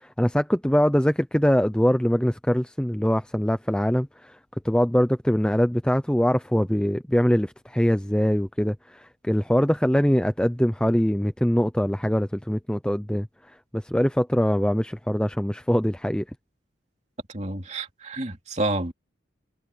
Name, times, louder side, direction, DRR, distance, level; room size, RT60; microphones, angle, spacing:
voice 1, 0.0-4.4 4.6-13.3 13.7-16.3, equal, 5° left, 0.6 m, -23 dB
voice 2, 17.3-18.9, right 2 dB, 35° right, 2.8 m, -29 dB
head